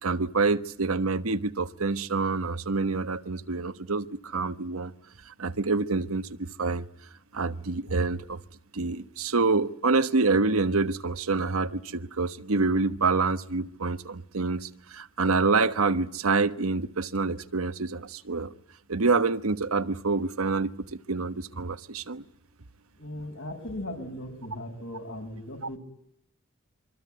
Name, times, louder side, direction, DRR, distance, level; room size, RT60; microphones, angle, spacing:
voice 1, 0.0-4.9 5.3-6.9 7.3-8.4 8.7-18.5 18.9-20.7 21.1-22.2, right 3 dB, 90° right, 1.2 m, -27 dB
voice 2, 23.0-25.8, left 1 dB, 65° left, 6.6 m, -38 dB
25.5 x 24.5 x 9.4 m
head